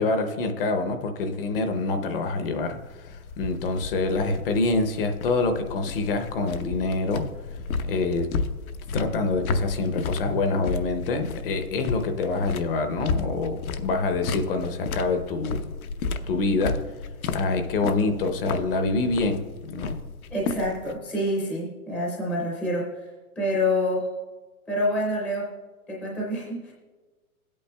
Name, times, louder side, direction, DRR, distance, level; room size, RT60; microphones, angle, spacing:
voice 1, 0.0-7.3 7.9-8.3 8.9-15.7 16.3-16.8 17.3-20.0, left 3 dB, 40° left, 6 dB, 0.8 m, -26 dB
sound 1, 1.7-21.0, left 4 dB, 75° left, 0.9 m, -33 dB
voice 2, 20.3-23.0 23.4-24.1 24.7-25.5 25.9-26.7, left 1 dB, 5° left, -5 dB, 0.6 m, -27 dB
15.5 x 8.5 x 2.2 m, 1.3 s
hypercardioid pair, 150°, 44 cm